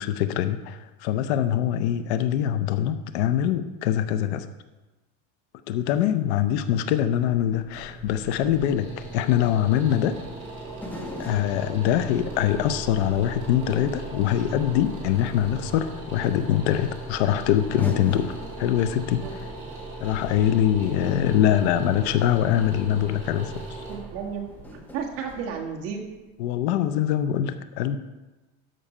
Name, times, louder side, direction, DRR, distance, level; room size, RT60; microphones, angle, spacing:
voice 1, 0.0-4.5 5.7-10.2 11.2-19.2 20.0-23.8 26.4-28.0, left 10 dB, 60° left, 11 dB, 0.7 m, -23 dB
sound 1, 7.4-26.3, right 2 dB, 20° right, 2.3 m, -38 dB
sound 2, 10.8-13.7 14.2-14.3 15.8-15.9 17.1-17.2 17.8-21.9 22.8-22.9 23.2-23.4 24.5-26.4 26.6-26.7, left 1 dB, 5° left, 0.6 m, -42 dB
voice 2, 23.9-24.4 24.7-26.0, right 6 dB, 40° right, 0 dB, 1.5 m, -33 dB
13.0 x 5.5 x 4.9 m, 1.1 s
cardioid pair, 175°, 37 cm